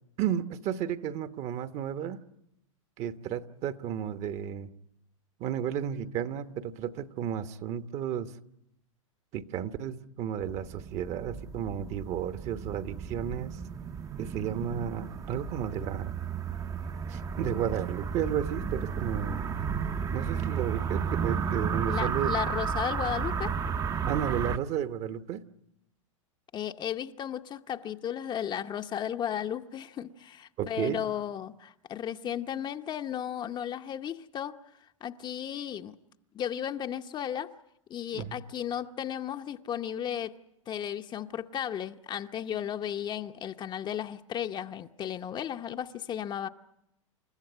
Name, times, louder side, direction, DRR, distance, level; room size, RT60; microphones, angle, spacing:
voice 1, 0.2-2.2 3.0-4.7 5.4-8.3 9.3-13.6 14.2-16.1 17.1-19.5 20.1-22.3 24.0-25.4 30.6-31.0 38.1-38.4, right 9 dB, 40° right, 1.3 m, -33 dB
sound 1, 10.4-24.6, right 6 dB, 20° right, 0.8 m, -33 dB
voice 2, 21.9-23.5 26.5-34.6 35.0-36.0 36.3-37.5 37.9-40.4 40.7-46.5, left 9 dB, 25° left, 0.9 m, -34 dB
29.0 x 14.0 x 9.8 m
hypercardioid pair, 110°, 17 cm